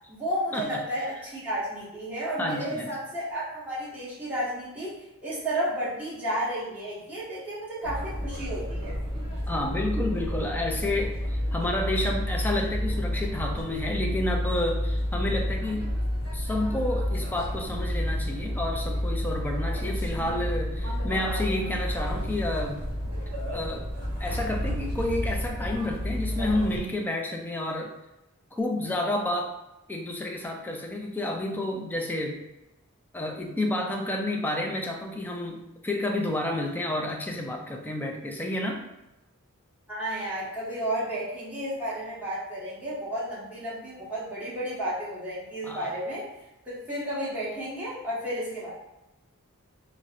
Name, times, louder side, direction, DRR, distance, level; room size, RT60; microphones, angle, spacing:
voice 1, 0.1-9.0 39.9-46.3 46.6-48.7, right 1 dB, 5° right, -11 dB, 1.2 m, -32 dB
voice 2, 2.4-2.9 9.5-15.9 16.3-22.8 23.5-23.9 24.2-27.9 28.5-29.6 29.9-32.4 33.1-38.8 45.6-45.9, left 1 dB, 10° left, 1 dB, 0.3 m, -30 dB
sound 1, 7.8-26.8, equal, 45° right, 1.2 m, -30 dB
4.0 x 2.0 x 2.4 m, 0.94 s
head